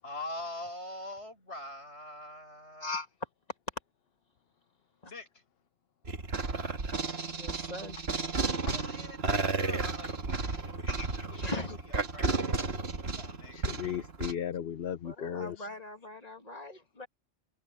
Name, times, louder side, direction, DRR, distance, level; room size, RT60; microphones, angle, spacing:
voice 1, 0.0-3.0 5.1-5.4 8.6-10.9 11.2-12.7 13.0-13.6, left 1 dB, 85° left, 7.5 m, -44 dB
sound 1, 6.1-14.3, right 3 dB, 70° right, 1.9 m, -33 dB
voice 2, 7.3-8.0 10.9-11.8 15.0-17.1, left 2 dB, 40° left, 2.6 m, -40 dB
voice 3, 13.5-15.7, left 9 dB, 65° left, 0.9 m, -36 dB
omnidirectional pair, 1.1 m